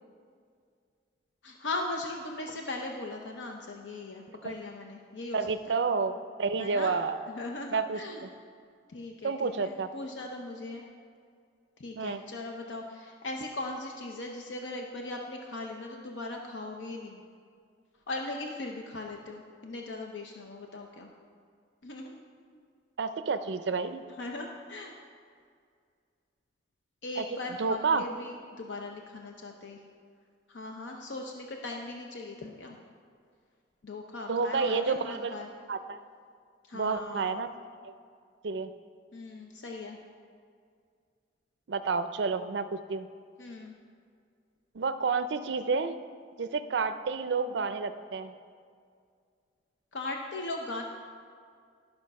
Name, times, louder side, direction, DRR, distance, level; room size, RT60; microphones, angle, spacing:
voice 1, 1.4-5.8 6.6-6.9 7.3-8.3 8.9-10.8 11.8-17.2 18.1-21.1 21.8-22.2 24.2-25.0 27.0-29.8 30.5-32.8 33.8-35.5 36.6-37.4 39.1-40.0 43.4-43.7 49.9-50.8, left 2 dB, 85° left, 2 dB, 0.7 m, -39 dB
voice 2, 5.3-7.2 7.7-8.0 9.2-9.9 12.0-12.2 23.0-24.0 27.2-27.3 27.6-28.0 34.3-35.3 35.7-36.0 36.7-37.9 38.4-38.7 41.7-43.1 44.7-46.0 46.4-48.3, right 4 dB, 70° right, 11 dB, 0.5 m, -30 dB
12.5 x 5.8 x 5.3 m, 2.2 s
head